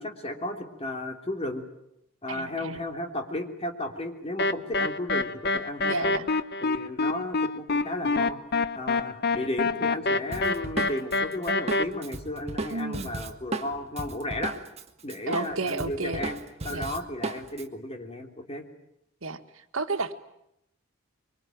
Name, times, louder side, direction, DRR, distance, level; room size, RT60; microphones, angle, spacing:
voice 1, 0.0-1.6 2.2-6.1 6.6-14.5 15.0-16.3 16.6-18.7, left 1 dB, 30° left, 4 dB, 3.2 m, -34 dB
voice 2, 2.3-2.8 5.9-6.3 12.7-13.1 15.3-16.2 16.7-16.9 19.2-20.1, right 3 dB, 90° right, 8 dB, 1.7 m, -32 dB
sound 1, 4.4-11.8, left 3 dB, 50° left, 1.0 m, -26 dB
Drum kit, 10.3-14.8 15.1-17.6, right 2 dB, 30° right, 1.6 m, -35 dB
25.0 x 24.0 x 9.3 m, 0.80 s
head